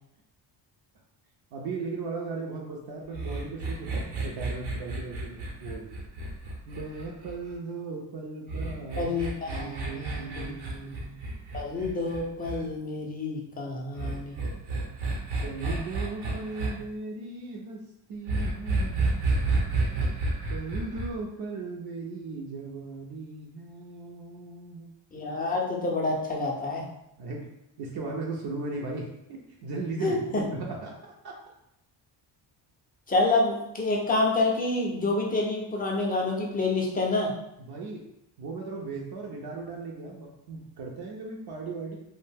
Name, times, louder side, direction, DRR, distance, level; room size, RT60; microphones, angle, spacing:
voice 1, 1.5-5.9 6.7-9.1 9.5-11.2 15.4-17.8 18.1-19.1 20.5-24.9 27.2-27.5 27.8-31.4 37.7-38.1 38.4-42.0, right 3 dB, 55° right, -1 dB, 0.5 m, -37 dB
sound 1, 3.1-7.5 8.5-12.6 14.0-16.7 18.3-21.1, right 3 dB, 85° right, 0.8 m, -30 dB
voice 2, 9.0-10.5 11.5-14.4 25.1-26.8 30.0-30.4 33.1-37.3, left 2 dB, 20° left, -1 dB, 0.4 m, -28 dB
2.5 x 2.1 x 3.3 m, 0.82 s
cardioid pair, 150°, 46 cm